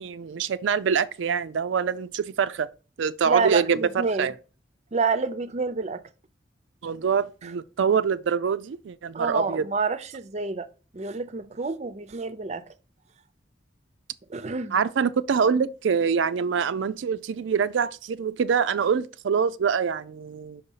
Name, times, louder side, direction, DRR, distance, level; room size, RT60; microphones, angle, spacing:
voice 1, 0.0-2.7 3.0-3.8 4.2-4.3 6.8-9.6 14.7-20.6, right 6 dB, 85° right, 0.4 m, -25 dB
voice 2, 3.2-4.3 4.9-6.0 7.4-7.5 9.1-10.7 10.9-12.7 14.3-14.8, right 4 dB, 35° right, 0.5 m, -28 dB
5.7 x 4.1 x 5.5 m
head